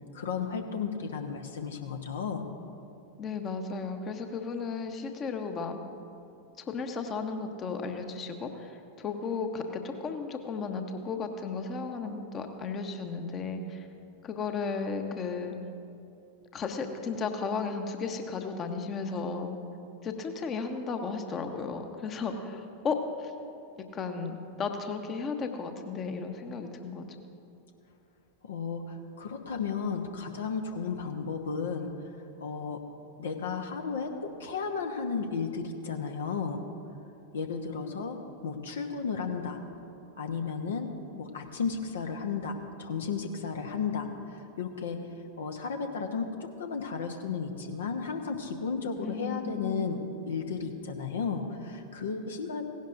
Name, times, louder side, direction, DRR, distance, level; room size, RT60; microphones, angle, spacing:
voice 1, 0.1-2.5 28.4-32.8 33.2-36.6 37.3-39.6 40.2-45.0 45.4-52.6, left 5 dB, 65° left, 5 dB, 0.9 m, -34 dB
voice 2, 3.2-5.8 6.6-13.9 14.2-15.6 16.5-19.6 20.0-23.3 23.9-27.1 49.0-49.9, left 4 dB, 25° left, 6 dB, 1.0 m, -34 dB
17.0 x 17.0 x 2.6 m, 2.8 s
figure-of-eight pair, 90°, 0 cm